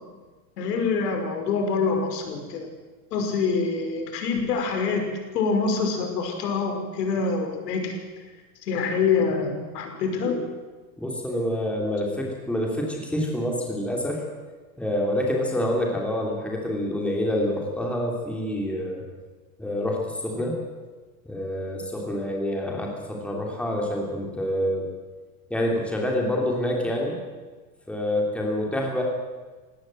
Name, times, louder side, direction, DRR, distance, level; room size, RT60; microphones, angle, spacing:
voice 1, 0.6-2.7 3.1-5.1 5.3-8.0 8.6-10.5, left 5 dB, 90° left, 4 dB, 5.5 m, -25 dB
voice 2, 11.0-14.2 14.8-19.0 19.6-20.6 21.2-24.9 25.5-27.2 27.9-29.0, left 1 dB, 5° left, -1 dB, 3.2 m, -27 dB
20.0 x 17.0 x 7.8 m, 1.3 s
supercardioid pair, 160°, 47 cm